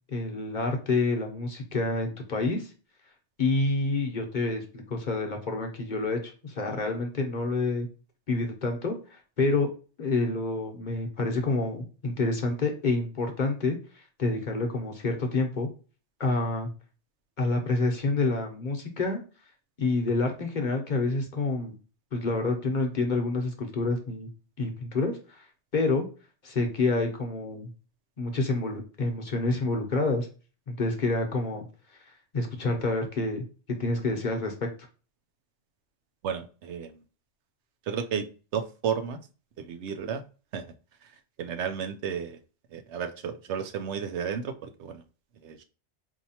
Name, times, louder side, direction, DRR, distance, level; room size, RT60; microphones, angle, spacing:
voice 1, 0.1-2.7 3.4-7.9 8.3-9.7 10.0-15.7 16.2-16.7 17.4-19.2 19.8-21.7 22.1-24.3 24.6-25.5 25.7-26.0 26.4-27.7 28.2-30.3 30.7-31.7 32.3-33.4 33.8-34.7, left 3 dB, 45° left, 2 dB, 0.8 m, -28 dB
voice 2, 36.2-37.0 37.9-38.3 38.5-39.2 39.6-40.2 40.5-40.6 41.0-41.1 41.4-42.4 42.7-45.0 45.4-45.6, right 7 dB, 75° right, 7 dB, 0.9 m, -32 dB
4.3 x 2.7 x 2.7 m, 0.36 s
omnidirectional pair, 1.2 m